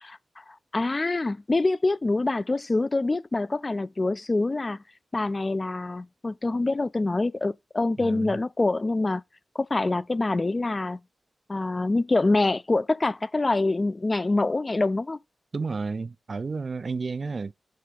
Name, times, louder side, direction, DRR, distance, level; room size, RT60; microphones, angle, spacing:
voice 1, 0.0-4.8 5.1-9.2 9.6-11.0 11.5-15.2, left 2 dB, 30° left, 0.4 m, -25 dB
voice 2, 8.0-8.4 15.5-17.5, right 4 dB, 45° right, 0.4 m, -31 dB
7.5 x 3.4 x 4.8 m
wide cardioid pair, 95°, 0 cm